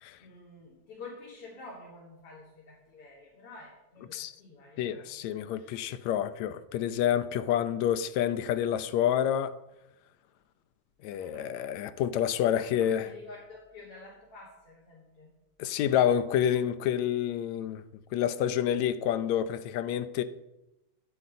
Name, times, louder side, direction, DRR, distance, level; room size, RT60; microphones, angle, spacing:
voice 1, 0.2-6.1 11.1-11.7 12.4-15.3, left 3 dB, 50° left, 3.9 m, -49 dB
voice 2, 4.8-9.6 11.0-13.1 15.6-17.8 18.1-20.2, left 10 dB, 75° left, 1.9 m, -28 dB
13.0 x 12.0 x 5.5 m
omnidirectional pair, 3.6 m